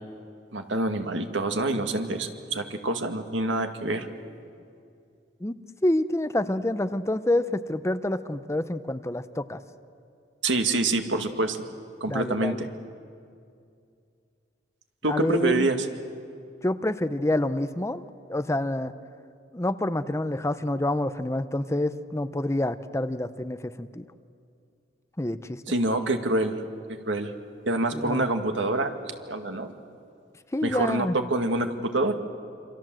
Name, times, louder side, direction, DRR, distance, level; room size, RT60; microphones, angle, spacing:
voice 1, 0.5-4.1 10.4-11.7 12.0-12.6 15.0-15.9 25.7-26.6 26.9-27.3 27.7-28.9 29.3-29.7 30.6-32.1, right 2 dB, 85° right, 6 dB, 2.1 m, -26 dB
voice 2, 5.4-9.6 12.1-12.7 15.1-15.7 16.6-18.0 18.3-18.9 19.5-24.0 25.2-25.6 27.9-28.2 30.5-31.2, left 1 dB, 15° left, 12 dB, 0.7 m, -27 dB
28.0 x 25.5 x 7.7 m, 2.4 s
head